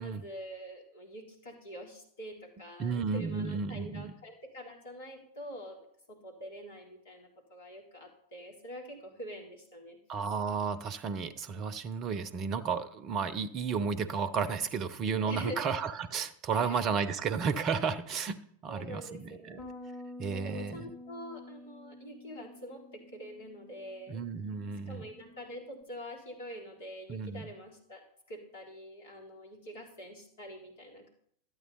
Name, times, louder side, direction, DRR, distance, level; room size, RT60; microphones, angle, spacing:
voice 1, 0.0-5.8 6.1-10.0 15.2-15.7 16.5-16.9 18.7-19.7 20.3-24.2 24.9-28.0 28.3-31.1, equal, 60° left, -1 dB, 3.5 m, -45 dB
voice 2, 2.8-4.2 10.1-19.6 20.2-20.9 24.1-25.0 27.1-27.5, right 5 dB, 35° right, 15 dB, 0.8 m, -33 dB
Bass guitar, 19.6-25.8, left 1 dB, 20° left, 3.2 m, -49 dB
12.0 x 9.3 x 4.1 m, 0.67 s
figure-of-eight pair, 90°, 0 cm